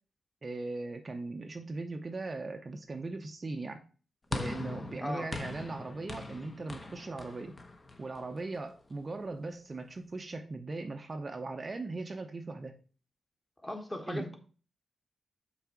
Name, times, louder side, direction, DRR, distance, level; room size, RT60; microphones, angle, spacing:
voice 1, 0.4-3.8 4.3-7.6 8.0-12.8 14.1-14.3, right 3 dB, 35° right, 0.6 m, -39 dB
sound 1, 4.3-8.7, left 2 dB, 30° left, 0.9 m, -41 dB
voice 2, 5.0-5.3 13.6-14.4, left 1 dB, 15° left, 1.2 m, -37 dB
5.8 x 4.1 x 5.9 m
wide cardioid pair, 120°, 0 cm